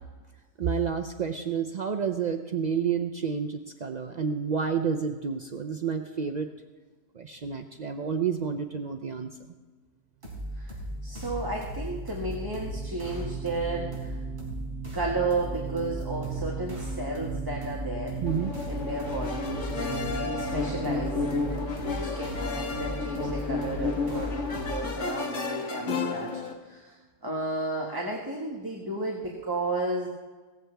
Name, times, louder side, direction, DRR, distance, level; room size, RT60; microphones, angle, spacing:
voice 1, 0.6-6.5 7.1-9.3 18.2-18.5, right 6 dB, 70° right, 6 dB, 0.4 m, -29 dB
sound 1, 10.2-25.0, equal, 30° right, 4.5 m, -37 dB
sound 2, 10.8-23.2, right 12 dB, 90° right, 1.2 m, -40 dB
voice 2, 11.0-14.2 14.9-18.2 18.7-30.1, right 2 dB, 15° right, -2 dB, 1.5 m, -33 dB
sound 3, 18.3-26.5, left 4 dB, 55° left, 1.7 m, -32 dB
17.5 x 15.0 x 3.4 m, 1.3 s
omnidirectional pair, 1.6 m